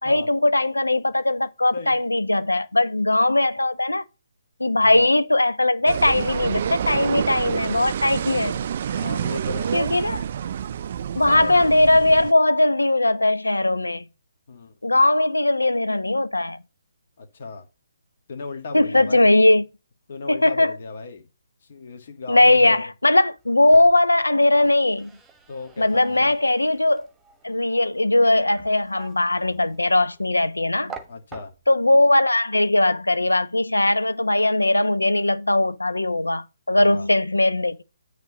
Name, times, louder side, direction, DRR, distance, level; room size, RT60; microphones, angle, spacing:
voice 1, 0.0-4.0 4.6-8.6 9.7-10.2 11.1-14.0 14.8-16.6 18.7-19.6 20.3-20.7 22.3-25.1 25.8-27.1 27.4-30.9 31.7-37.8, left 2 dB, 90° left, 0.8 m, -19 dB
sound 1, 5.9-12.3, right 9 dB, 45° right, 0.3 m, -28 dB
voice 2, 8.9-9.9 11.2-11.6 14.5-14.7 17.2-17.6 18.3-19.3 20.1-21.2 21.7-22.9 25.5-26.3 31.1-31.5 36.8-37.1, left 4 dB, 50° left, 1.8 m, -35 dB
sound 2, 23.4-31.9, right 5 dB, 10° right, 1.3 m, -47 dB
9.1 x 3.4 x 6.8 m
figure-of-eight pair, 140°, 0 cm